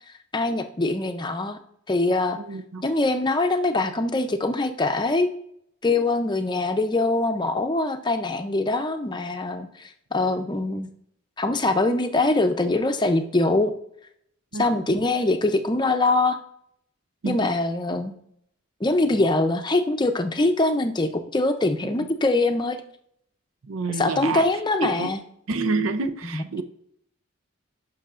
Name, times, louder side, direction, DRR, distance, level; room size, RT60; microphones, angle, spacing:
voice 1, 0.3-1.6 1.9-2.4 2.8-5.3 5.8-10.9 11.4-13.7 14.6-16.4 17.2-18.1 18.8-22.8 24.0-25.2 26.3-26.4, left 2 dB, 20° left, 7 dB, 0.5 m, -23 dB
voice 2, 2.4-2.8 14.5-14.7 17.2-17.5 21.8-22.1 23.7-24.4 24.8-25.1 25.5-26.6, right 3 dB, 85° right, 10 dB, 0.6 m, -28 dB
14.0 x 6.2 x 2.5 m, 0.71 s
head